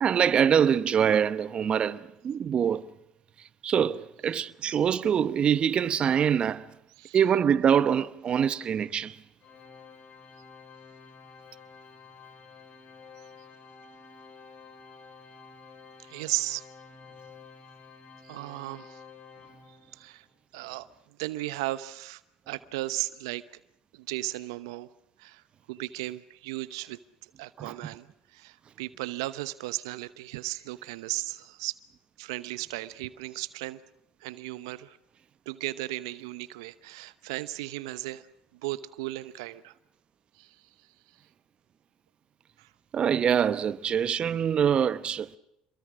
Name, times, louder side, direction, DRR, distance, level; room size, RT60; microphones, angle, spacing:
voice 1, 0.0-2.9 3.6-6.7 7.1-9.2 27.6-27.7 42.9-45.3, right 8 dB, 45° right, 1.0 m, -24 dB
Organ, 9.4-20.2, left 5 dB, 45° left, 5.2 m, -51 dB
voice 2, 16.1-16.6 18.2-19.0 19.9-20.2 20.5-20.9 21.2-22.2 22.5-23.4 23.9-24.9 25.2-25.4 25.7-27.0 27.4-28.1 28.3-31.8 32.2-33.8 34.2-35.0 35.5-38.2 38.6-39.7 40.4-40.6 42.6-42.7, right 18 dB, 85° right, 0.9 m, -35 dB
27.5 x 22.5 x 6.2 m
hypercardioid pair, 75°, 3 cm